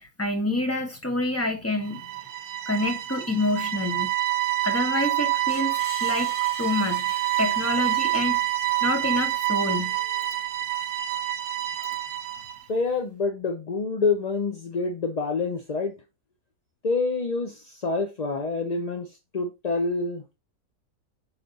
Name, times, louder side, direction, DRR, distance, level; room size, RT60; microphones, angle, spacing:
voice 1, 0.0-2.0 2.7-4.1 4.6-5.7 6.0-6.3 6.6-8.4 8.8-10.0, left 2 dB, 10° left, 1.0 m, -27 dB
sound 1, 1.9-12.6, right 15 dB, 80° right, 1.1 m, -27 dB
Screech, 5.5-10.4, left 1 dB, 35° left, 1.9 m, -46 dB
voice 2, 12.7-16.0 16.8-20.2, left 3 dB, 60° left, 0.4 m, -27 dB
5.1 x 4.9 x 3.9 m
omnidirectional pair, 1.6 m